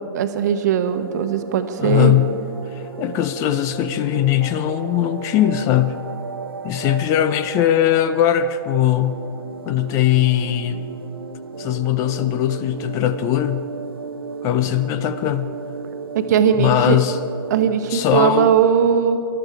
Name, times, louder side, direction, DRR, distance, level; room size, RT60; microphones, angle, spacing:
voice 1, 0.1-2.2 16.1-17.0 17.5-19.2, right 8 dB, 50° right, 9 dB, 1.1 m, -19 dB
sound 1, 0.8-17.9, right 4 dB, 80° right, 0.8 m, -34 dB
voice 2, 1.8-2.4 2.7-6.0 6.6-9.3 9.6-10.9 11.6-13.7 14.4-15.5 16.6-17.2 17.9-18.5, left 12 dB, 25° left, 13 dB, 0.5 m, -20 dB
19.0 x 13.0 x 4.8 m, 2.6 s
figure-of-eight pair, 115°, 12 cm